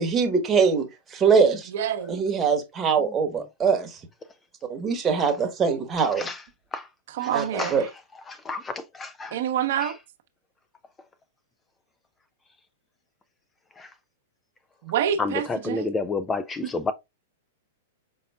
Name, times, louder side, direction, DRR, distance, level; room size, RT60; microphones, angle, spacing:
voice 1, 0.0-1.7 2.1-4.0 4.7-6.3 7.3-7.8, right 5 dB, 20° right, 1.1 m, -23 dB
voice 2, 1.7-2.2 7.1-7.9 9.3-9.9 14.8-15.9, right 9 dB, 65° right, 0.8 m, -27 dB
voice 3, 8.3-9.4 9.8-9.9 13.8-13.9 15.2-16.9, left 3 dB, 15° left, 0.4 m, -30 dB
5.4 x 4.0 x 2.2 m
hypercardioid pair, 120°, 0 cm